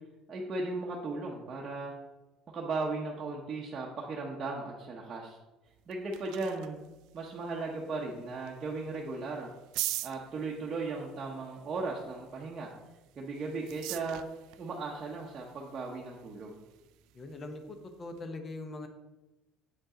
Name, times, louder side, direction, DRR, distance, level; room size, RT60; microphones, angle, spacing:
voice 1, 0.3-1.9 2.5-5.4 5.9-6.8 7.1-9.5 10.0-12.7 13.2-14.2 14.6-16.6, right 3 dB, 25° right, -3 dB, 0.9 m, -36 dB
sound 1, 5.7-18.2, right 17 dB, 70° right, 0.3 m, -45 dB
voice 2, 17.1-18.9, left 2 dB, 25° left, 7 dB, 0.8 m, -42 dB
7.5 x 5.2 x 3.8 m, 1.1 s
cardioid pair, 155°, 0 cm